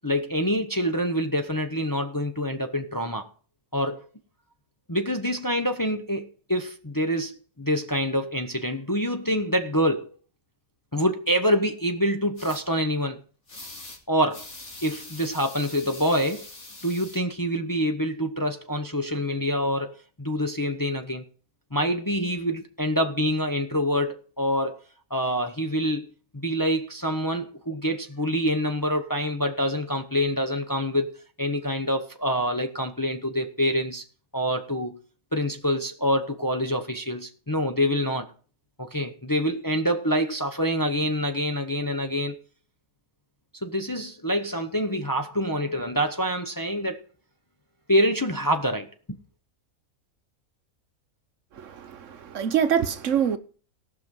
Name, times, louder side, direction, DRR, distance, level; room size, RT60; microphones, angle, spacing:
voice 1, 0.0-3.3 3.7-4.0 4.9-10.1 10.9-13.2 14.1-14.5 14.8-16.5 16.8-21.2 21.7-24.8 25.1-26.1 26.3-31.1 31.4-34.0 34.3-35.0 35.3-38.3 38.8-42.4 43.6-47.0 47.9-48.9, equal, 20° left, 0.7 m, -26 dB
sound 1, 12.4-12.6 13.5-14.0 14.3-17.2, left 2 dB, 55° left, 2.8 m, -43 dB
voice 2, 51.5-53.4, right 8 dB, 65° right, 1.2 m, -25 dB
18.0 x 6.0 x 5.4 m
omnidirectional pair, 1.4 m